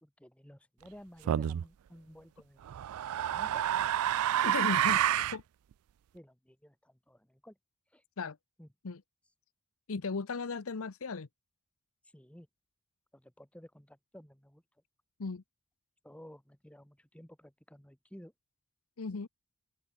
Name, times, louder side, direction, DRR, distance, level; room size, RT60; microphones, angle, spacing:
voice 1, 0.0-2.8 3.2-3.6 6.1-7.6 7.9-8.0 8.6-8.7 12.1-12.5 13.1-14.6 16.0-18.3, equal, 5° left, 1.8 m, -54 dB
sound 1, 1.3-1.6 2.7-5.4, right 11 dB, 85° right, 0.3 m, -29 dB
voice 2, 4.4-5.4 8.2-8.4 8.8-9.0 9.9-11.3 15.2-15.4 19.0-19.3, left 4 dB, 70° left, 0.8 m, -36 dB
open air
head